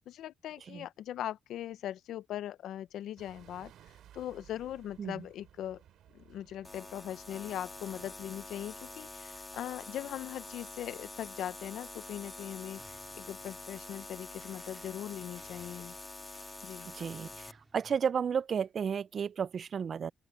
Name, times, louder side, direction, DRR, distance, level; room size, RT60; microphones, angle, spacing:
voice 1, 0.1-3.7 4.1-5.8 6.1-15.9 16.6-16.9, left 11 dB, 75° left, 0.7 m, -40 dB
sound 1, 3.2-16.0, right 11 dB, 75° right, 4.2 m, -62 dB
sound 2, 6.6-17.5, left 2 dB, 20° left, 3.3 m, -46 dB
sound 3, 12.8-18.0, right 2 dB, 20° right, 5.5 m, -62 dB
voice 2, 16.9-17.5 17.7-20.1, right 7 dB, 50° right, 0.4 m, -32 dB
open air
cardioid pair, 90°, 0 cm